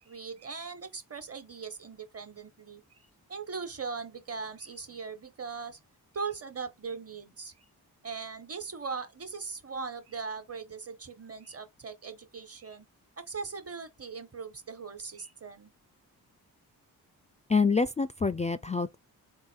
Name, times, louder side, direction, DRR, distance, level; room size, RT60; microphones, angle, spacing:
voice 1, 0.0-2.8 3.3-5.8 6.1-7.6 8.0-12.9 13.2-15.7, right 5 dB, 35° right, 1.3 m, -40 dB
voice 2, 17.5-19.0, left 4 dB, 20° left, 0.4 m, -26 dB
3.7 x 2.7 x 4.5 m
cardioid pair, 50°, 39 cm